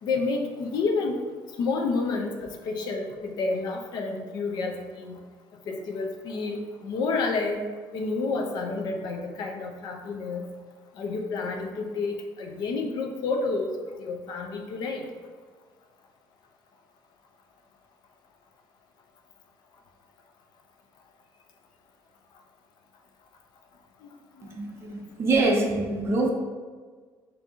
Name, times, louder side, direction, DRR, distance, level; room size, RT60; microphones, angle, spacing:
voice 1, 0.0-1.2 1.6-5.2 5.7-10.5 10.9-15.1 24.0-24.1 24.4-24.6, left 3 dB, 55° left, 3 dB, 0.5 m, -30 dB
voice 2, 24.5-26.3, right 2 dB, 30° right, 0 dB, 0.6 m, -25 dB
3.5 x 2.7 x 4.2 m, 1.5 s
cardioid pair, 175°, 8 cm